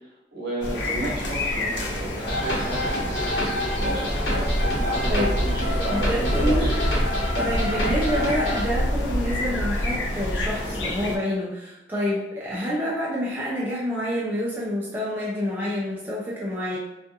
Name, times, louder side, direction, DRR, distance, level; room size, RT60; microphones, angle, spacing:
voice 1, 0.3-3.2 3.8-6.7, right 2 dB, 60° right, -6 dB, 0.8 m, -32 dB
sound 1, 0.6-11.2, equal, 85° left, 0.5 m, -27 dB
sound 2, 2.3-8.6, left 1 dB, 70° left, 1.1 m, -28 dB
voice 2, 5.9-6.7 7.3-16.8, equal, 10° right, -6 dB, 0.3 m, -27 dB
2.4 x 2.3 x 2.6 m, 0.95 s
head